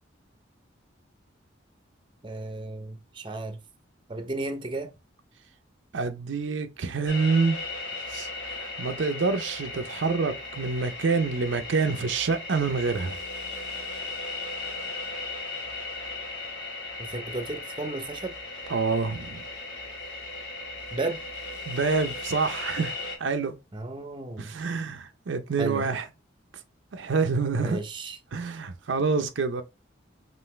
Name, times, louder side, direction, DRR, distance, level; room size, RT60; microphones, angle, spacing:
voice 1, 2.2-3.6 4.1-4.9 17.0-18.3 20.9-21.2 23.7-24.5 25.6-25.9 27.5-28.2, right 2 dB, 25° right, 0.6 m, -33 dB
voice 2, 5.9-7.6 8.1-13.2 18.7-19.4 21.7-23.6 24.4-26.0 26.9-27.8 28.3-29.6, right 4 dB, 75° right, 0.5 m, -27 dB
sound 1, 7.1-23.2, left 3 dB, 75° left, 1.7 m, -37 dB
5.6 x 2.6 x 3.1 m
head